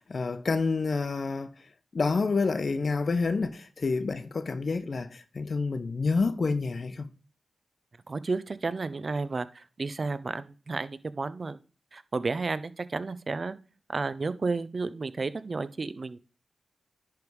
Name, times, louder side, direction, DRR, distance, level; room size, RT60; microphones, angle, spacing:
voice 1, 0.0-1.5 1.9-7.1, left 4 dB, 60° left, 0.8 m, -28 dB
voice 2, 8.1-11.6 11.9-13.5 13.9-16.2, right 3 dB, 55° right, 0.6 m, -32 dB
10.5 x 3.5 x 4.7 m
cardioid pair, 45°, 0 cm